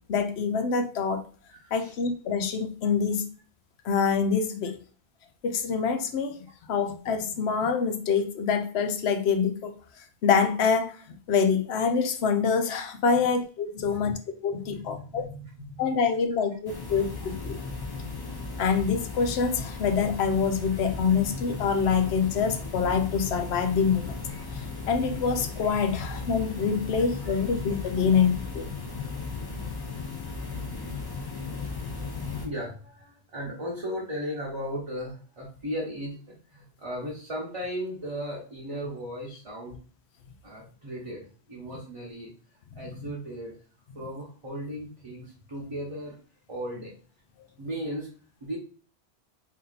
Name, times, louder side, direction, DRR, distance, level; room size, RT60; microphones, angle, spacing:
voice 1, 0.1-1.2 1.7-3.3 3.8-4.8 5.4-9.7 10.2-11.0 11.3-15.3 15.8-17.6 18.6-24.2 24.5-28.7, left 6 dB, 85° left, 6 dB, 0.9 m, -26 dB
voice 2, 1.5-1.9 13.2-13.3 13.8-14.1 14.5-15.9 26.9-27.4 30.5-30.6 32.3-39.8 40.4-42.3 42.7-43.6 43.9-46.2 46.5-47.0 47.6-48.1 48.4-48.6, equal, 35° right, -4 dB, 0.9 m, -36 dB
sound 1, 16.7-32.5, left 4 dB, 25° left, 0.6 m, -36 dB
3.6 x 2.7 x 3.9 m, 0.40 s
omnidirectional pair, 1.1 m